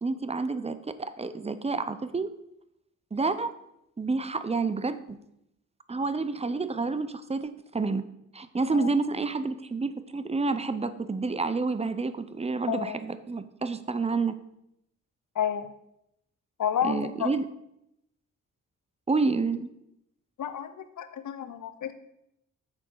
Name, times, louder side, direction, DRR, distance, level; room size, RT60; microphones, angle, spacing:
voice 1, 0.0-2.3 3.1-3.5 4.0-5.2 5.9-8.0 8.3-14.3 16.8-17.4 19.1-19.7, right 3 dB, 20° right, 12 dB, 0.6 m, -29 dB
voice 2, 12.7-13.0 15.4-15.7 16.6-17.3 20.4-21.9, left 8 dB, 60° left, 10 dB, 0.8 m, -30 dB
7.0 x 4.2 x 5.5 m, 0.80 s
cardioid pair, 65°, 34 cm